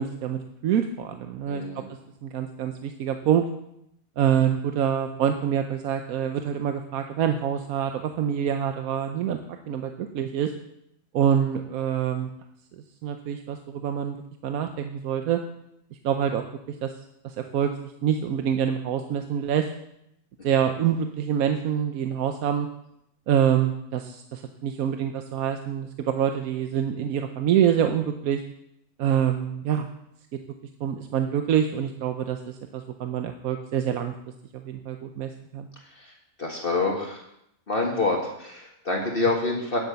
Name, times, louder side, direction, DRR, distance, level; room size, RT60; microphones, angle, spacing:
voice 1, 0.0-1.6 2.2-3.4 4.2-9.4 9.7-10.5 11.1-12.3 13.0-15.4 16.0-16.4 16.8-16.9 17.2-17.7 18.0-19.7 20.4-22.7 23.3-28.4 29.0-29.9 30.8-34.1 34.5-35.7, right 9 dB, 85° right, 6 dB, 1.2 m, -26 dB
voice 2, 1.5-1.8 35.9-36.1 36.4-37.2 37.7-39.8, left 3 dB, 40° left, 0 dB, 1.9 m, -27 dB
9.8 x 8.6 x 6.9 m, 0.79 s
omnidirectional pair, 1.4 m